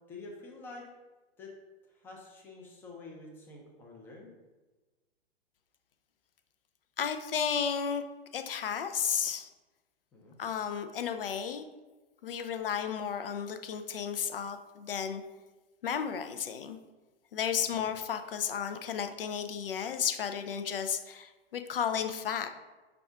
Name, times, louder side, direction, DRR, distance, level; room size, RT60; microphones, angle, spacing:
voice 1, 0.1-0.9 1.4-1.5 1.9-4.3 10.1-10.4 17.7-17.8, left 3 dB, 5° left, -1 dB, 0.4 m, -48 dB
voice 2, 7.0-8.0 8.3-9.5 10.4-11.6 12.2-15.2 15.8-16.8 17.3-22.5, left 7 dB, 65° left, 8 dB, 0.5 m, -33 dB
5.8 x 2.4 x 3.5 m, 1.2 s
figure-of-eight pair, 105°, 31 cm